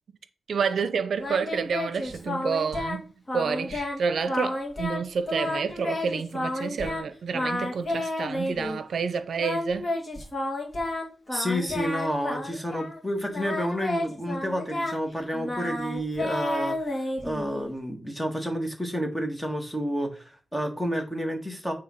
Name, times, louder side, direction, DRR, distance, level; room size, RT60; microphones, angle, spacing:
voice 1, 0.5-10.0, right 6 dB, 75° right, 0.6 m, -29 dB
Singing, 1.2-3.0 3.3-4.0 4.3-5.0 5.3-7.0 7.3-8.8 9.4-13.0 13.3-17.7, left 1 dB, 30° left, 2.1 m, -31 dB
voice 2, 11.3-16.8 17.2-21.7, equal, 5° left, 1.6 m, -30 dB
8.9 x 3.4 x 5.7 m
wide cardioid pair, 115°, 0 cm